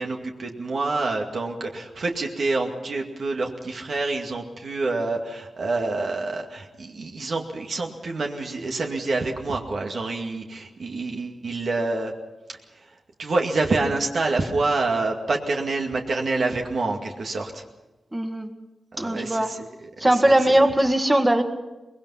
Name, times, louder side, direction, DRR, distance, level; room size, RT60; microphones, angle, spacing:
voice 1, 0.0-12.1 12.8-12.9 13.2-17.6 18.9-19.6 20.0-20.6, right 3 dB, 65° right, 2 dB, 2.2 m, -27 dB
voice 2, 18.1-18.5 19.0-19.6 20.0-21.4, right 1 dB, 15° right, 5 dB, 1.8 m, -20 dB
23.5 x 21.0 x 5.7 m, 1.1 s
wide cardioid pair, 95°, 0 cm